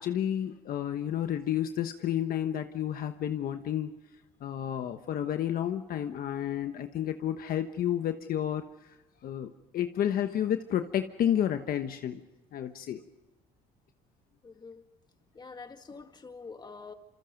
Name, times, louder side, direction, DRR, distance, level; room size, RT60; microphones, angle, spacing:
voice 1, 0.0-3.9 4.4-8.6 9.2-12.2 12.5-13.0, left 10 dB, 60° left, 7 dB, 1.2 m, -31 dB
voice 2, 14.4-14.8 15.3-16.9, left 4 dB, 25° left, 6 dB, 2.1 m, -46 dB
27.0 x 26.5 x 5.3 m, 1.0 s
cardioid pair, 110°, 17 cm